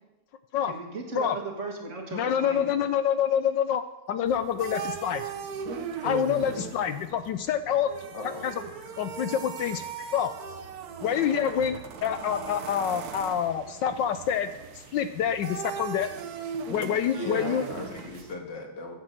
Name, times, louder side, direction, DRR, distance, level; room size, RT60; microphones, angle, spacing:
voice 1, 0.7-2.7, right 3 dB, 35° right, 1 dB, 1.9 m, -36 dB
voice 2, 2.1-3.8 4.1-5.2 6.0-7.9 8.4-8.5 9.0-9.8 10.1-10.3 11.0-14.5 14.7-16.1 16.7-17.6, left 9 dB, 75° left, 11 dB, 1.1 m, -27 dB
sound 1, 4.3-18.3, right 6 dB, 60° right, 1.1 m, -38 dB
voice 3, 8.1-8.5 8.8-8.9 10.0-10.1 11.4-11.5 17.1-19.0, left 1 dB, 55° left, 1 dB, 2.2 m, -37 dB
9.4 x 7.5 x 7.6 m, 1.1 s
omnidirectional pair, 2.4 m